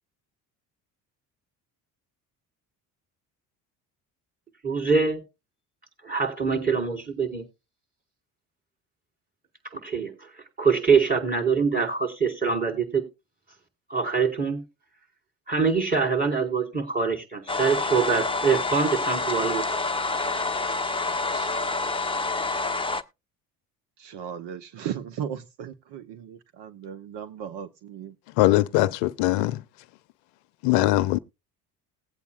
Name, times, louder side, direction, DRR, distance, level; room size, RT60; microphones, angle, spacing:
voice 1, 4.6-5.2 6.0-7.5 9.7-10.3 10.6-13.1 13.9-14.6 15.5-19.8, right 5 dB, 20° right, 5.2 m, -24 dB
sound 1, 17.5-23.0, left 3 dB, 10° left, 0.9 m, -27 dB
voice 2, 20.7-21.0 21.3-21.5 24.0-28.1, right 9 dB, 60° right, 1.0 m, -37 dB
voice 3, 28.4-29.6 30.6-31.2, left 17 dB, 70° left, 0.7 m, -21 dB
19.5 x 8.2 x 2.4 m
hypercardioid pair, 60°, 47 cm